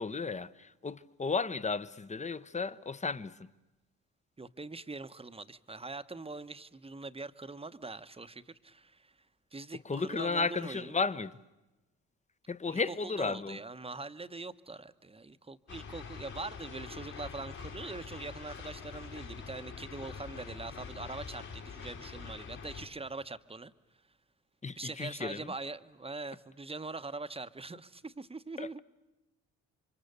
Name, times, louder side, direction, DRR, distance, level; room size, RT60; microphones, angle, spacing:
voice 1, 0.0-3.5 9.8-11.4 12.5-13.6 24.6-25.5 28.6-28.8, left 4 dB, 20° left, 0.9 m, -34 dB
voice 2, 4.4-9.2 9.5-11.0 12.7-23.7 24.8-28.8, right 3 dB, 20° right, 1.0 m, -43 dB
sound 1, 15.7-22.9, left 6 dB, 60° left, 3.6 m, -45 dB
29.0 x 24.5 x 6.8 m
cardioid pair, 70°, 32 cm